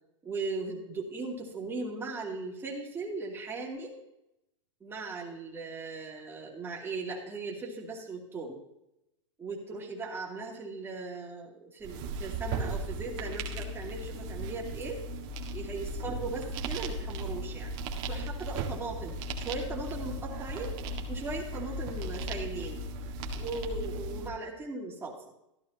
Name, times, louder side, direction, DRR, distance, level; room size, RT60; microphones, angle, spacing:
voice 1, 0.2-3.9 4.8-8.6 9.4-15.0 15.5-17.7 18.1-20.7 21.1-22.8 23.4-25.2, right 3 dB, 15° right, -2 dB, 2.6 m, -38 dB
sound 1, 11.8-24.3, right 1 dB, 45° right, 1.7 m, -36 dB
14.0 x 11.5 x 2.8 m, 0.87 s
hypercardioid pair, 125°, 16 cm